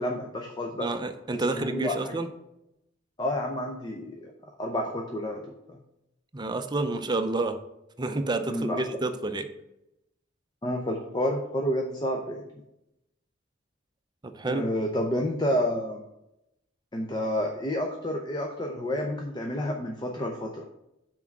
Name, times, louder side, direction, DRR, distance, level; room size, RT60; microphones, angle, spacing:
voice 1, 0.0-0.9 1.3-2.1 3.2-5.8 8.5-8.8 10.6-12.4 14.5-16.0 16.9-20.6, equal, 25° left, 2 dB, 0.6 m, -30 dB
voice 2, 0.8-2.3 6.3-7.5 8.0-9.5 14.4-14.6, right 2 dB, 25° right, 8 dB, 0.5 m, -29 dB
6.1 x 4.5 x 6.0 m, 0.86 s
head